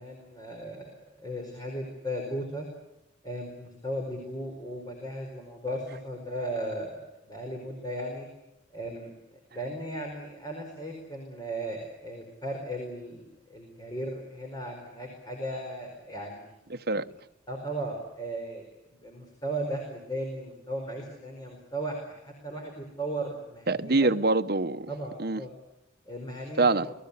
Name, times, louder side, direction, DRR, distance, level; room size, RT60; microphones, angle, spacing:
voice 1, 0.0-2.7 3.2-8.3 8.7-16.5 17.0-17.1 17.5-24.1 24.9-25.5 26.1-26.9, right 1 dB, 20° left, 4.6 m, -36 dB
voice 2, 16.7-17.0 23.7-24.9 25.2-25.4 26.6-26.9, right 3 dB, 50° right, 1.0 m, -24 dB
28.5 x 19.5 x 8.4 m
head